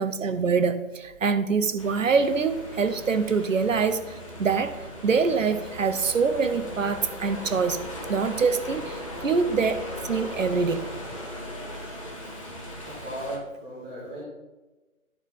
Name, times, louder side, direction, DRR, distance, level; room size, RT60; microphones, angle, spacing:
voice 1, 0.0-7.8 8.1-10.9, right 5 dB, 60° right, 11 dB, 0.8 m, -25 dB
sound 1, 1.8-13.4, left 1 dB, 25° left, 1.0 m, -38 dB
voice 2, 12.8-14.2, right 1 dB, 10° right, -11 dB, 0.9 m, -36 dB
10.5 x 4.4 x 4.0 m, 1.1 s
figure-of-eight pair, 165°, 43 cm